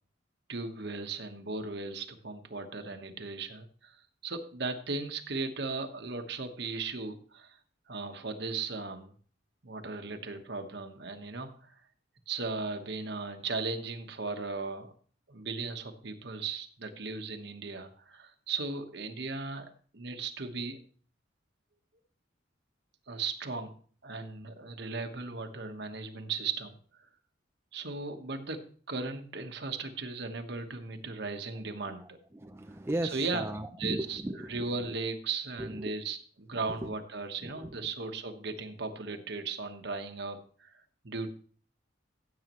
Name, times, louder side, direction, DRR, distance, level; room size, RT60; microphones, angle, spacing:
voice 1, 0.5-7.6 7.9-9.1 9.6-11.8 12.3-14.9 15.3-20.8 23.1-23.7 24.0-26.7 27.7-32.2 33.1-34.2 34.5-41.3, right 4 dB, 60° right, 6 dB, 1.3 m, -37 dB
voice 2, 31.8-35.0 35.6-36.0 36.7-36.9 37.4-37.9, right 1 dB, 15° right, 6 dB, 0.5 m, -38 dB
15.5 x 8.1 x 3.1 m, 0.43 s
head